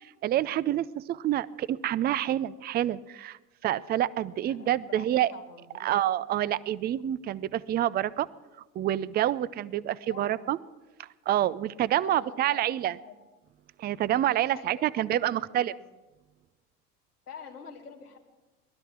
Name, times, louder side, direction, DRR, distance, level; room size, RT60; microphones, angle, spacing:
voice 1, 0.0-5.3 5.8-8.3 8.8-10.6 11.0-12.9 13.8-15.7, right 12 dB, 25° right, 20 dB, 0.4 m, -28 dB
voice 2, 4.3-6.0 10.1-10.5 12.0-13.1 14.5-15.9 17.3-18.2, left 5 dB, 90° left, 1 dB, 2.1 m, -47 dB
19.5 x 12.5 x 5.9 m, 1.2 s
hypercardioid pair, 75°, 45 cm